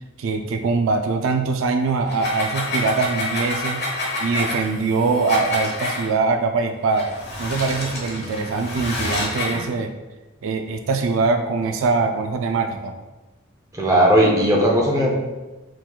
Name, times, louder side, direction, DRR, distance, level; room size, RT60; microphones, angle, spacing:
voice 1, 0.2-3.9 4.2-7.1 7.4-9.9 10.4-13.0, right 4 dB, 75° right, 6 dB, 0.3 m, -22 dB
sound 1, 2.0-6.1 6.9-9.6, left 2 dB, 50° left, 1.0 m, -28 dB
voice 2, 13.7-15.1, equal, 15° right, -2 dB, 0.6 m, -17 dB
4.4 x 3.7 x 2.3 m, 1.1 s
head